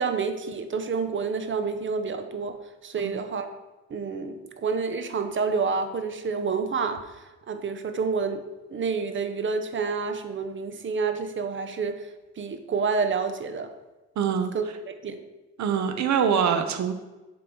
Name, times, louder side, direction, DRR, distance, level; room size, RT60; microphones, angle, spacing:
voice 1, 0.0-2.6 2.8-3.5 3.9-8.4 8.7-12.0 12.4-13.7 14.5-15.2, right 5 dB, 40° right, 8 dB, 0.9 m, -29 dB
voice 2, 14.2-14.5 15.6-16.9, right 7 dB, 65° right, 7 dB, 0.9 m, -24 dB
7.7 x 3.6 x 6.1 m, 1.1 s
cardioid pair, 90°, 30 cm